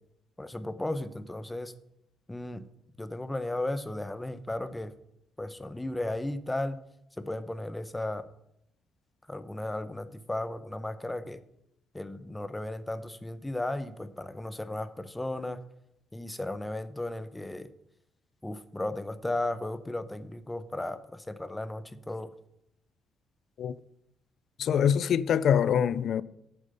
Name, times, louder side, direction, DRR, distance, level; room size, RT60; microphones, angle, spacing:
voice 1, 0.4-1.7 2.3-2.6 3.0-4.9 5.4-6.8 7.2-8.2 9.3-11.4 11.9-15.6 16.1-17.7 18.4-22.3, left 1 dB, 10° left, 0.8 m, -35 dB
voice 2, 24.6-26.2, left 8 dB, 65° left, 0.4 m, -24 dB
9.1 x 6.9 x 5.4 m
cardioid pair, 90°, 0 cm